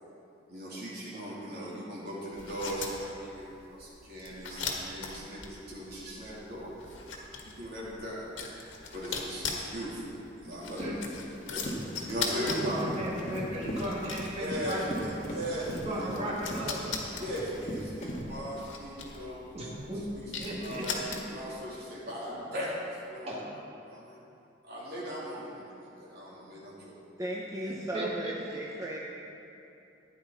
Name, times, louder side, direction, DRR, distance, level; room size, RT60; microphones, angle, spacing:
voice 1, 0.5-7.1 7.4-8.2 8.9-10.8 11.4-11.7 12.0-12.9 14.4-16.1 16.5-16.6 17.2-19.7 20.1-21.0 21.3-23.3 23.8-24.2 24.6-26.9, equal, 55° right, -6 dB, 3.2 m, -38 dB
sound 1, 2.3-21.5, left 4 dB, 85° left, 1.7 m, -40 dB
voice 2, 10.8-11.2 12.4-15.2 15.7-16.8 19.5-20.0 20.4-21.2 22.3-22.4 23.3-23.5 27.9-28.3, right 1 dB, 35° right, -5 dB, 1.9 m, -36 dB
Run, 11.3-18.2, equal, 40° left, 1.8 m, -39 dB
voice 3, 27.2-29.0, right 1 dB, 20° right, -3 dB, 0.8 m, -36 dB
14.5 x 10.0 x 4.1 m, 2.7 s
head